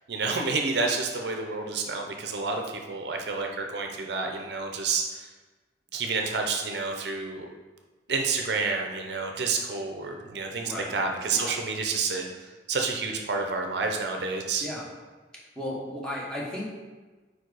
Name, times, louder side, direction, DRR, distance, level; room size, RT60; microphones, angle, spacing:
voice 1, 0.1-5.3 5.9-7.5 8.1-14.7, right 4 dB, 65° right, 3 dB, 0.6 m, -29 dB
voice 2, 10.6-11.6 14.6-14.8 15.5-16.7, left 1 dB, 5° left, -5 dB, 1.1 m, -35 dB
4.7 x 4.6 x 4.7 m, 1.3 s
head